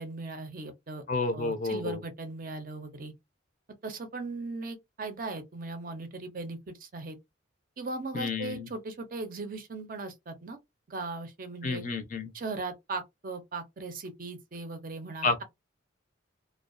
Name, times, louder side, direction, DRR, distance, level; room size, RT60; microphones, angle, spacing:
voice 1, 0.0-1.0 1.3-3.1 3.8-7.2 7.8-10.6 10.9-11.8 12.3-15.4, right 3 dB, 45° right, 0.5 m, -38 dB
voice 2, 1.1-2.0 8.1-8.7 11.6-12.3 15.2-15.4, left 3 dB, 40° left, 0.4 m, -30 dB
2.3 x 2.1 x 2.5 m
head